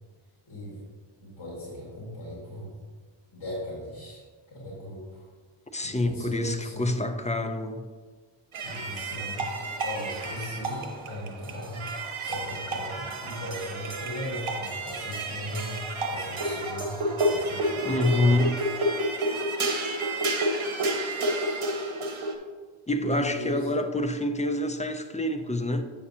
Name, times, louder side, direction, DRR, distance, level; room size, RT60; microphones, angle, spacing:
voice 1, 0.5-0.8 1.2-2.7 3.3-4.2 4.5-5.3 5.8-6.9 8.6-9.5 9.8-11.8 12.2-18.4 23.1-23.7, left 1 dB, 55° left, -7 dB, 2.0 m, -38 dB
voice 2, 5.7-7.9 17.8-18.6 22.9-25.8, left 1 dB, 15° left, 6 dB, 0.3 m, -26 dB
sound 1, 8.5-22.3, right 1 dB, 75° right, 1.0 m, -30 dB
8.5 x 6.0 x 2.7 m, 1.5 s
wide cardioid pair, 140°, 49 cm